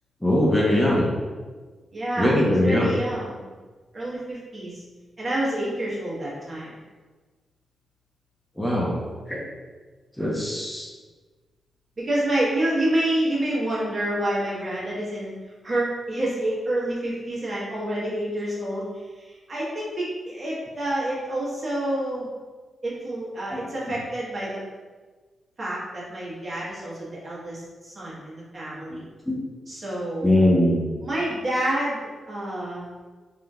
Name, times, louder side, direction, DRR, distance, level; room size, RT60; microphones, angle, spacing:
voice 1, 0.2-1.1 2.2-2.9 8.6-9.4 10.2-10.9 23.5-23.6 23.9-24.0 29.2-29.4 30.2-30.9, left 1 dB, 5° left, -5 dB, 0.8 m, -21 dB
voice 2, 1.9-3.5 3.9-4.8 5.2-6.7 12.0-15.3 15.6-18.9 19.2-22.3 22.8-24.6 25.6-29.0 29.7-30.3 31.0-32.9, right 1 dB, 45° right, -7 dB, 1.4 m, -28 dB
3.5 x 2.7 x 2.4 m, 1.4 s
supercardioid pair, 45°, 0 cm